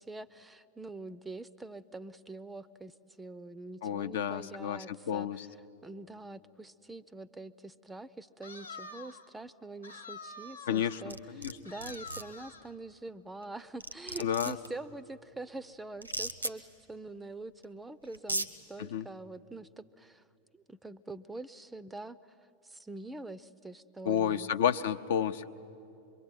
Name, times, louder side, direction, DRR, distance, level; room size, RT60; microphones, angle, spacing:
voice 1, 0.0-5.5 5.8-20.2 20.5-22.2 22.6-24.5, right 2 dB, 10° right, 18 dB, 0.5 m, -45 dB
voice 2, 3.8-5.5 10.7-11.6 14.2-14.6 18.8-19.1 24.0-25.5, left 9 dB, 60° left, 10 dB, 0.6 m, -31 dB
sound 1, 8.4-9.3 9.8-11.1 11.6-12.7, left 3 dB, 80° left, 0.9 m, -47 dB
sound 2, 11.1-11.5 11.8-12.2 13.4-13.5 13.8-14.7 16.0-16.5 17.6-17.7 18.1-18.5, right 2 dB, 90° right, 1.0 m, -35 dB
25.0 x 22.5 x 9.2 m, 2.8 s
figure-of-eight pair, 90°, 0 cm